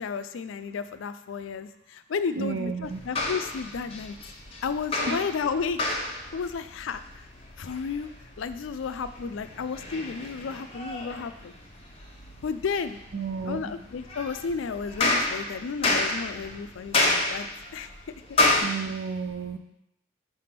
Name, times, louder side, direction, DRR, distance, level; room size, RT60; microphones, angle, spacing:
voice 1, 0.0-4.2 4.6-5.8 6.3-7.0 7.6-8.1 8.4-11.5 12.4-13.0 13.5-17.9 18.3-18.4, left 5 dB, 90° left, 11 dB, 0.4 m, -32 dB
voice 2, 2.4-3.0 5.1-5.2 13.1-13.8 18.6-19.6, right 5 dB, 70° right, 5 dB, 0.7 m, -32 dB
sound 1, 2.8-18.6, left 2 dB, 30° left, 0.9 m, -31 dB
5.8 x 3.4 x 5.9 m, 0.81 s
head